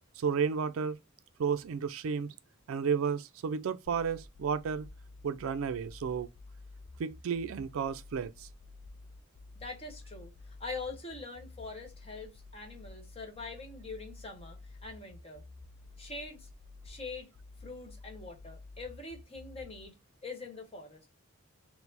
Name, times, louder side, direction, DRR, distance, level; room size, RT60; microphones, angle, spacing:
voice 1, 0.2-1.0 1.4-2.3 2.7-4.9 5.2-6.3 7.0-8.5, right 6 dB, 75° right, 0.3 m, -32 dB
sound 1, 3.9-19.9, left 3 dB, 60° left, 0.4 m, -51 dB
voice 2, 9.5-15.4 16.0-16.5 16.8-17.3 17.6-19.9 20.2-21.1, left 3 dB, 25° left, 1.0 m, -44 dB
4.5 x 2.0 x 4.0 m
head